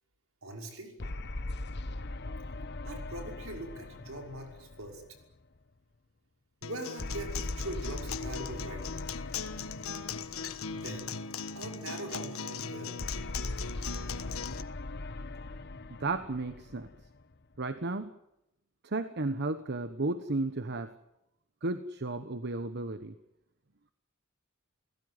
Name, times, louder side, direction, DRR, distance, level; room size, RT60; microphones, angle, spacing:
voice 1, 0.4-0.9 2.8-5.0 6.6-9.1 10.7-11.1 11.5-13.0, right 1 dB, 75° right, 2 dB, 5.8 m, -42 dB
sound 1, 1.0-5.6 7.0-11.4 13.0-17.6, left 2 dB, 55° left, 1.1 m, -40 dB
Acoustic guitar, 6.6-14.6, left 6 dB, 90° left, 1.4 m, -39 dB
voice 2, 16.0-16.9 17.6-18.1 18.8-20.9 21.6-23.1, right 2 dB, 55° right, 10 dB, 1.2 m, -33 dB
29.0 x 17.0 x 9.6 m, 0.87 s
head